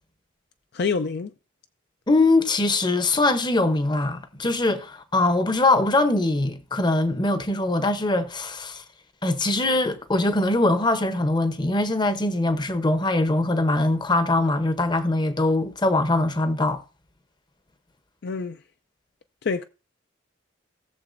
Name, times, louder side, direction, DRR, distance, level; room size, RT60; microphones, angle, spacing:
voice 1, 0.7-1.3 18.2-18.6 19.4-19.6, left 5 dB, 55° left, 0.4 m, -26 dB
voice 2, 2.1-8.8 9.2-16.8, left 2 dB, 20° left, 0.8 m, -22 dB
18.0 x 6.9 x 2.5 m
head